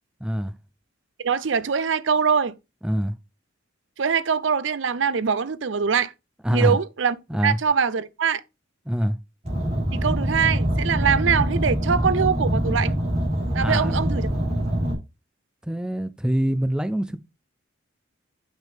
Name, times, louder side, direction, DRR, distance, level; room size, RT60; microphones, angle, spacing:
voice 1, 0.2-0.5 2.8-3.1 6.4-6.8 7.3-7.6 8.9-9.2 13.6-13.9 15.6-17.2, equal, 5° right, 0.4 m, -24 dB
voice 2, 1.2-2.5 4.0-6.1 6.5-8.4 9.9-12.9 13.5-14.3, right 6 dB, 70° right, 0.6 m, -23 dB
Car, 9.4-14.9, equal, 35° right, 4.2 m, -24 dB
7.5 x 6.1 x 3.4 m
head